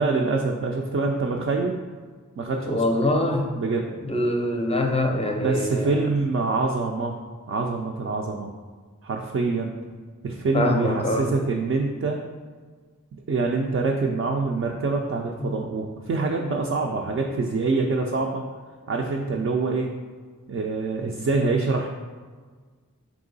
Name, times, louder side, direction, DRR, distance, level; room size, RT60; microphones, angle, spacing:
voice 1, 0.0-1.8 2.4-3.0 3.6-3.9 5.4-7.2 7.5-8.5 9.0-9.7 10.2-12.2 13.3-18.4 18.9-20.0 20.5-21.9, right 3 dB, 45° right, 0 dB, 0.4 m, -25 dB
voice 2, 2.7-3.5 4.0-6.0 10.5-11.3 15.4-15.5, left 1 dB, 20° left, 3 dB, 0.5 m, -24 dB
3.7 x 3.1 x 3.9 m, 1.5 s
wide cardioid pair, 60°, 32 cm